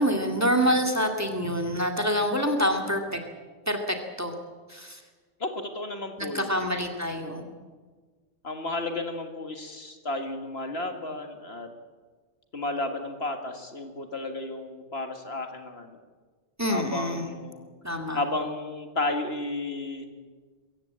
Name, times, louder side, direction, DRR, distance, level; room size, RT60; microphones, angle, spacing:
voice 1, 0.0-3.2 3.7-4.3 4.7-5.0 6.2-7.4 16.6-17.3 17.8-18.2, equal, 15° right, 4 dB, 2.2 m, -26 dB
voice 2, 5.4-6.5 8.4-11.7 12.5-16.0 16.7-17.7 18.1-20.1, left 2 dB, 60° left, 5 dB, 2.2 m, -33 dB
23.5 x 15.0 x 8.7 m, 1.4 s
omnidirectional pair, 1.2 m